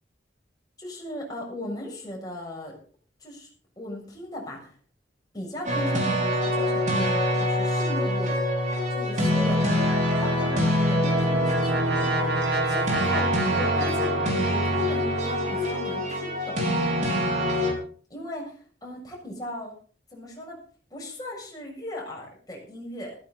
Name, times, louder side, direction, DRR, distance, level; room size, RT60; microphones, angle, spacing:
voice 1, 0.8-2.8 3.2-3.5 3.8-4.8 5.3-8.4 8.9-9.8 10.1-16.6 18.1-19.7 20.1-20.6 20.9-23.2, left 1 dB, 20° left, -2 dB, 7.0 m, -38 dB
sound 1, 5.6-17.7, equal, 40° right, 5.3 m, -25 dB
Brass instrument, 10.6-15.4, right 4 dB, 60° right, 1.7 m, -30 dB
15.5 x 15.5 x 4.1 m, 0.43 s
head